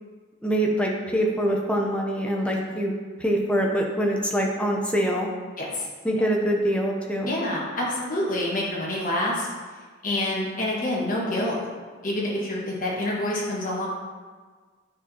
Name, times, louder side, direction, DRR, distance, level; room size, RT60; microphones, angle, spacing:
voice 1, 0.4-2.9 3.2-5.3 6.0-7.3, equal, 5° left, 0 dB, 0.6 m, -24 dB
voice 2, 2.4-2.8 5.6-5.9 6.2-6.3 7.2-9.5 10.0-11.6 12.0-13.9, left 1 dB, 40° left, -5 dB, 1.4 m, -27 dB
8.6 x 4.3 x 2.8 m, 1.5 s
head